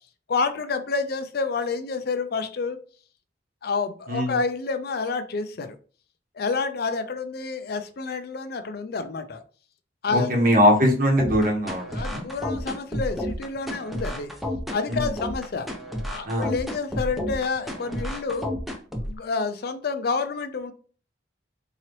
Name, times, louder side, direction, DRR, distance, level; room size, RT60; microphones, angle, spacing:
voice 1, 0.3-2.8 3.6-5.8 6.3-9.4 10.0-10.3 11.9-14.3 14.7-15.7 16.1-18.5 19.0-20.7, left 4 dB, 55° left, 10 dB, 0.5 m, -29 dB
voice 2, 10.1-12.3 14.9-15.1 16.2-16.5, equal, 50° right, 1 dB, 1.1 m, -21 dB
sound 1, 11.2-19.2, equal, ahead, 0.5 m, -31 dB
3.8 x 2.9 x 3.1 m, 0.41 s
head